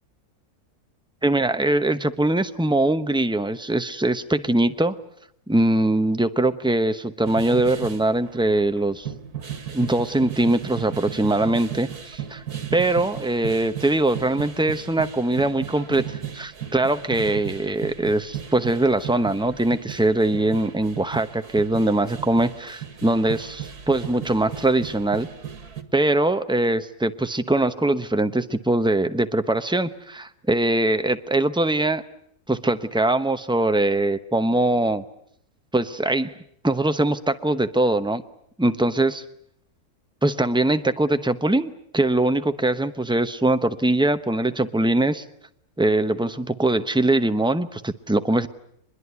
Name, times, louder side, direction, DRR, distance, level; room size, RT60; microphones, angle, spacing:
voice 1, 1.2-4.9 5.5-9.1 9.7-12.4 12.7-25.3 25.9-32.0 32.5-35.0 35.7-36.4 36.6-38.2 38.6-39.2 40.2-45.2 45.8-48.5, right 2 dB, 5° right, 9 dB, 0.6 m, -22 dB
sound 1, 7.2-25.8, right 9 dB, 70° right, 2.3 m, -36 dB
24.0 x 21.5 x 9.5 m, 0.69 s
omnidirectional pair, 1.7 m